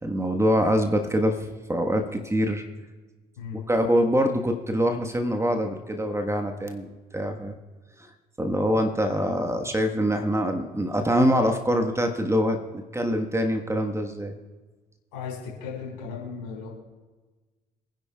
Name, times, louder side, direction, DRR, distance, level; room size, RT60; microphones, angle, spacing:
voice 1, 0.0-1.4 1.7-2.6 3.7-7.6 8.0-8.1 8.4-14.3, equal, 15° right, 4 dB, 1.4 m, -24 dB
voice 2, 15.1-16.7, left 6 dB, 70° left, -3 dB, 4.9 m, -36 dB
27.5 x 10.0 x 2.4 m, 1.3 s
figure-of-eight pair, 45°, 20 cm